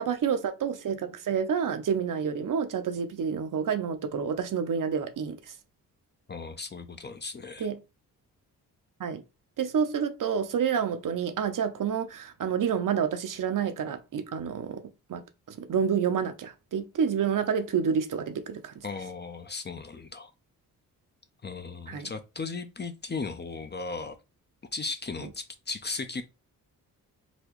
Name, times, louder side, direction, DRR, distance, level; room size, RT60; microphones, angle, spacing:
voice 1, 0.0-5.5 7.6-7.8 9.0-9.2 9.6-14.8 15.1-18.8 21.9-22.1, right 7 dB, 55° right, 0.7 m, -29 dB
voice 2, 6.3-7.7 18.8-20.3 21.4-24.2 24.7-26.2, left 4 dB, 25° left, 0.5 m, -36 dB
4.0 x 2.3 x 3.0 m
cardioid pair, 60°, 39 cm